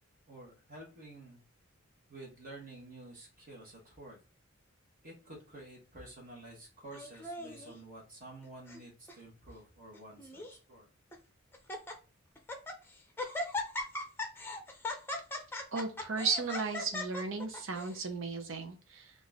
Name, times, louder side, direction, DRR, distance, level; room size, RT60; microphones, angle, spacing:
voice 1, 0.3-1.4 2.1-4.2 5.0-10.9, right 2 dB, 45° right, -2 dB, 1.3 m, -50 dB
Laughter, 6.9-7.7 8.4-8.8 9.1-9.2 9.9-10.6 11.1-11.2 11.5-11.9 12.4-12.8 13.2-18.0, left 2 dB, 10° left, 0.7 m, -39 dB
voice 2, 15.7-19.1, right 4 dB, 70° right, 5 dB, 0.8 m, -35 dB
3.8 x 2.6 x 3.5 m, 0.34 s
head